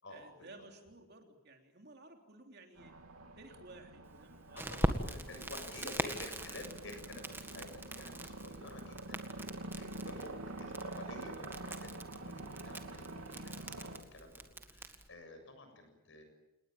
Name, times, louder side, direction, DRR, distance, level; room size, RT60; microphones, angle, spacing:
voice 1, 0.1-2.9 3.4-4.7 5.1-5.3 5.6-6.6, right 2 dB, 45° right, 3 dB, 3.3 m, -55 dB
sound 1, 2.8-14.0, right 2 dB, 80° right, 3.0 m, -47 dB
voice 2, 4.5-16.2, left 2 dB, 55° left, 6 dB, 7.3 m, -51 dB
Crackle, 4.6-15.1, right 1 dB, 10° right, 1.8 m, -42 dB
28.5 x 20.0 x 9.1 m, 1.0 s
head